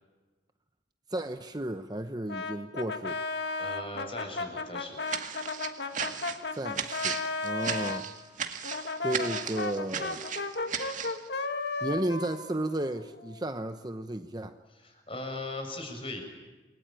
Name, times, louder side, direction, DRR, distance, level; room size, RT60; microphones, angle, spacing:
voice 1, 1.1-3.2 6.5-8.1 9.0-10.2 11.8-14.6, right 1 dB, 20° right, 8 dB, 0.9 m, -33 dB
Brass instrument, 2.3-8.0 8.6-13.4, left 3 dB, 65° left, 1.9 m, -34 dB
voice 2, 3.6-5.0 14.7-16.2, left 2 dB, 30° left, 4 dB, 6.6 m, -39 dB
sound 1, 5.1-11.2, right 7 dB, 45° right, 2.1 m, -35 dB
28.5 x 21.5 x 9.0 m, 1.2 s
head